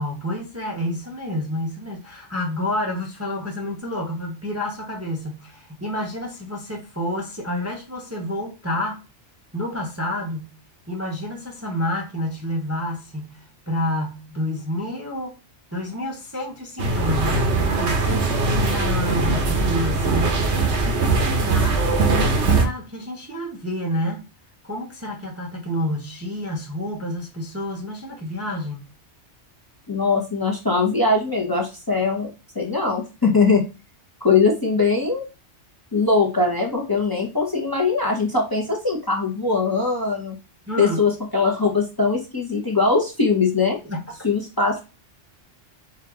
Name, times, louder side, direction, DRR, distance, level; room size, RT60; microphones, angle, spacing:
voice 1, 0.0-9.0 9.5-10.5 10.9-15.4 15.7-20.4 20.8-24.2 24.6-28.8 40.7-41.0 43.8-44.3, left 1 dB, 15° right, 0.6 m, -29 dB
sound 1, 16.8-22.6, right 3 dB, 75° right, 1.2 m, -21 dB
voice 2, 29.9-32.3 32.5-33.6 34.2-35.2 35.9-40.4 40.8-43.8 44.2-44.8, left 4 dB, 20° left, 0.7 m, -21 dB
4.5 x 2.5 x 3.6 m
omnidirectional pair, 1.2 m